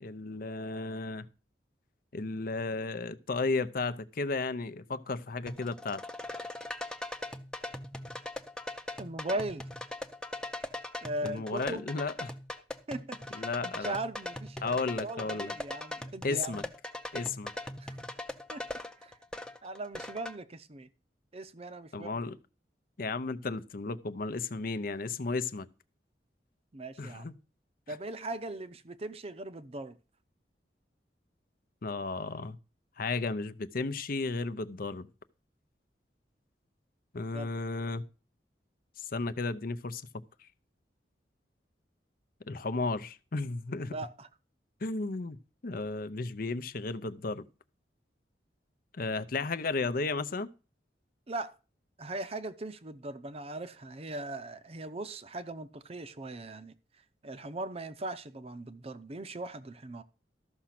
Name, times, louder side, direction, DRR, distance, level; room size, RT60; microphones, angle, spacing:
voice 1, 0.0-1.3 2.1-6.0 11.2-12.3 13.3-14.0 14.6-15.5 16.2-16.6 17.1-17.5 21.9-22.4 23.0-25.7 27.0-27.3 31.8-32.6 33.0-35.1 37.1-38.0 39.0-40.0 42.5-43.9 44.8-45.4 45.6-47.4 48.9-50.5, left 3 dB, 55° left, 0.7 m, -34 dB
sound 1, 5.5-20.4, left 1 dB, 5° left, 0.7 m, -40 dB
voice 2, 9.0-9.6 11.0-11.9 12.9-16.7 17.8-18.0 18.5-18.6 19.0-19.2 19.6-20.9 21.3-22.2 26.7-27.3 27.9-30.0 37.3-37.5 43.9-44.3 51.3-51.5 52.0-56.7 57.2-60.0, right 2 dB, 35° right, 0.7 m, -39 dB
13.0 x 6.0 x 5.8 m
head